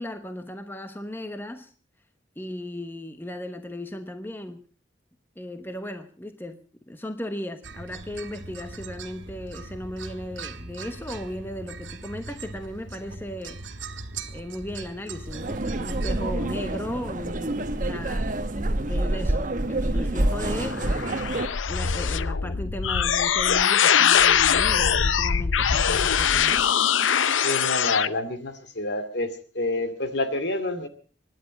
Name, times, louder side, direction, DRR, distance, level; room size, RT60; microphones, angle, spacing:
voice 1, 0.0-1.7 2.4-4.6 5.4-6.6 6.9-13.6 14.3-18.3 18.8-21.1 21.7-26.6, left 1 dB, 10° left, 8 dB, 1.1 m, -36 dB
sound 1, 7.6-17.2, right 3 dB, 75° right, 1.9 m, -40 dB
sound 2, 15.3-21.5, right 1 dB, 45° right, 1.2 m, -27 dB
sound 3, 20.4-28.1, left 8 dB, 85° left, 0.7 m, -22 dB
voice 2, 27.4-30.9, left 2 dB, 60° left, 9 dB, 2.4 m, -28 dB
25.0 x 11.0 x 5.2 m, 0.39 s
head